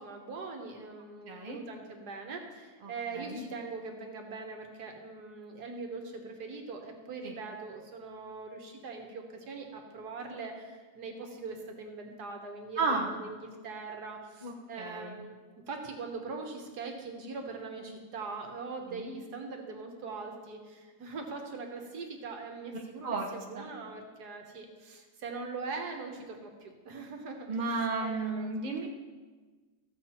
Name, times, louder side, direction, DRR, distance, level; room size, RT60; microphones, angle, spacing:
voice 1, 0.0-15.4 15.7-27.7 28.0-28.6, right 4 dB, 80° right, 3 dB, 1.8 m, -42 dB
voice 2, 1.2-1.6 2.8-3.4 7.2-7.3 12.8-13.1 14.4-15.2 18.9-19.1 22.7-23.3 23.5-23.7 27.5-28.9, right 3 dB, 30° right, 0 dB, 1.2 m, -34 dB
14.0 x 7.4 x 4.4 m, 1.4 s
omnidirectional pair, 1.7 m